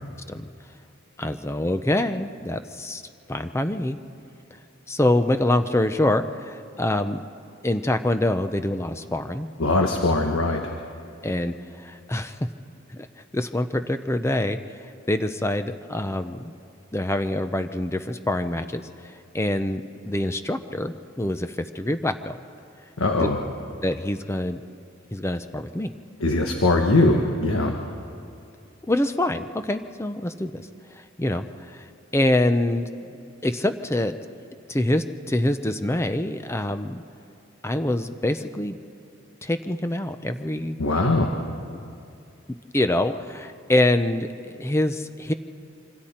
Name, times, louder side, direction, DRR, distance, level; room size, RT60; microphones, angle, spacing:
voice 1, 1.2-3.0 3.3-4.0 4.9-7.3 7.6-9.5 11.2-12.4 12.9-13.1 13.3-16.5 16.9-22.4 23.2-23.3 23.8-24.6 25.1-25.9 28.9-33.2 33.4-34.2 34.7-37.0 37.6-38.8 39.4-40.8 42.7-45.3, left 1 dB, 15° left, 9 dB, 0.5 m, -25 dB
voice 2, 9.6-10.6 23.0-23.4 26.2-27.8 40.8-41.4, left 2 dB, 90° left, 3 dB, 1.3 m, -21 dB
26.5 x 25.0 x 4.4 m, 2.5 s
head